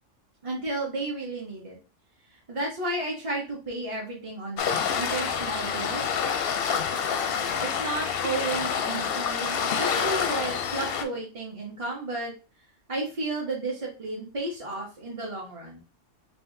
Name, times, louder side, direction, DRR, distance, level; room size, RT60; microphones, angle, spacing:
voice 1, 0.4-1.8 2.5-6.2 7.6-12.3 12.9-15.8, right 2 dB, 30° right, -3 dB, 0.8 m, -33 dB
Waves surf, 4.6-11.0, left 7 dB, 60° left, 0.7 m, -27 dB
4.8 x 2.7 x 2.6 m, 0.33 s
omnidirectional pair, 1.3 m